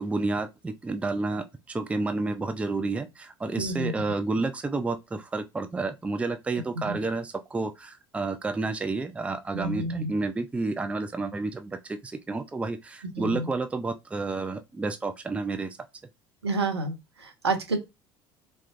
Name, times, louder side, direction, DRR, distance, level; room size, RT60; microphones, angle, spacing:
voice 1, 0.0-15.8, right 3 dB, 10° right, 0.4 m, -30 dB
voice 2, 3.6-3.9 6.5-7.0 9.5-10.1 13.1-13.5 16.4-17.8, right 3 dB, 80° right, 0.8 m, -30 dB
4.2 x 2.3 x 2.5 m
figure-of-eight pair, 65°, 13 cm